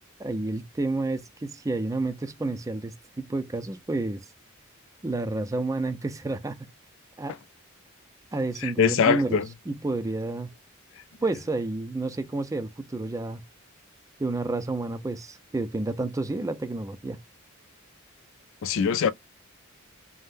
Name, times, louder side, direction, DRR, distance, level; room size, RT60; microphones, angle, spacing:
voice 1, 0.2-4.2 5.0-6.6 7.2-7.4 8.3-9.4 9.7-10.5 11.2-13.4 14.2-17.2, right 2 dB, 15° right, 0.4 m, -30 dB
voice 2, 8.6-9.5 18.6-19.1, left 6 dB, 65° left, 0.4 m, -22 dB
2.6 x 2.0 x 3.5 m
head